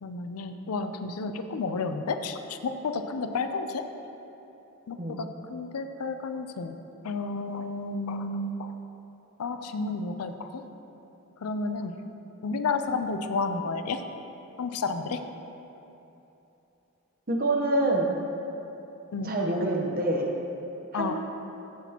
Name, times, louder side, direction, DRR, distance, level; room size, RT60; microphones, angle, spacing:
voice 1, 0.0-3.9 4.9-6.8 7.0-8.8 9.4-10.6 11.4-11.9 12.4-14.0 14.6-15.2 19.1-19.3 20.9-21.1, left 3 dB, 80° left, 8 dB, 0.5 m, -31 dB
voice 2, 17.3-18.1 19.2-20.3 20.9-21.1, right 1 dB, 40° right, 0 dB, 0.9 m, -26 dB
15.0 x 6.0 x 2.9 m, 3.0 s
head